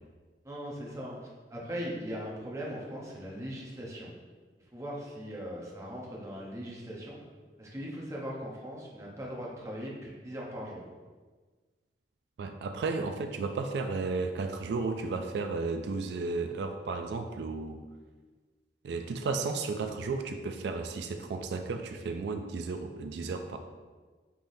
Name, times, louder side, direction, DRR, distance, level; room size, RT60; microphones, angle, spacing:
voice 1, 0.4-4.1 4.7-7.2 7.6-10.9, equal, 15° right, -4 dB, 0.8 m, -39 dB
voice 2, 12.4-17.8 18.8-23.6, right 4 dB, 70° right, 6 dB, 0.3 m, -33 dB
5.6 x 3.4 x 2.6 m, 1.4 s
head